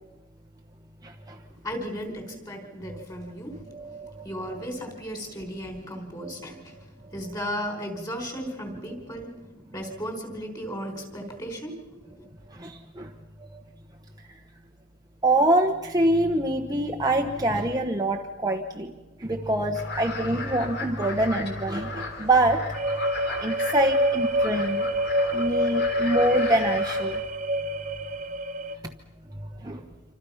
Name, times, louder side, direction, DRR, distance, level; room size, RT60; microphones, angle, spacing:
voice 1, 1.6-3.6 4.2-6.8 7.1-9.4 9.7-11.8 12.2-12.3, equal, 20° left, 4 dB, 4.5 m, -35 dB
voice 2, 3.7-4.3 6.2-6.3 12.6-13.1 15.2-18.9 19.2-24.9 25.3-27.2 29.4-29.8, right 1 dB, 15° right, 2 dB, 1.2 m, -25 dB
sound 1, 19.7-27.2, left 3 dB, 50° left, 3.7 m, -36 dB
sound 2, 22.7-28.7, equal, 35° right, 1.4 m, -26 dB
27.5 x 26.0 x 5.8 m, 1.1 s
head